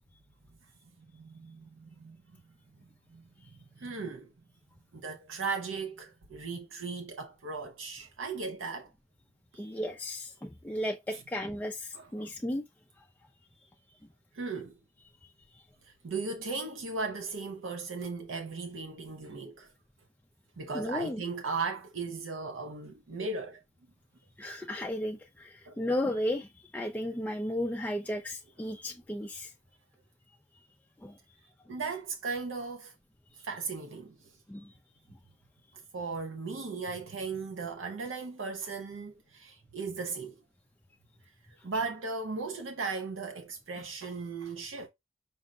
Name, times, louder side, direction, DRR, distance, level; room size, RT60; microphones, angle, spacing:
voice 1, 1.1-2.2 3.1-3.2 3.8-4.3 4.9-8.9 9.5-9.8 11.1-11.2 11.9-12.3 14.3-14.7 15.9-19.7 20.6-23.6 25.7-25.8 31.7-32.9 33.4-34.3 35.9-40.3 41.6-44.9, right 4 dB, 90° right, 0.6 m, -37 dB
voice 2, 9.6-12.6 15.2-15.6 20.7-21.2 24.4-29.5 31.0-31.2 34.5-34.7 41.7-41.8, left 1 dB, 10° left, 0.3 m, -34 dB
5.3 x 2.1 x 3.6 m
head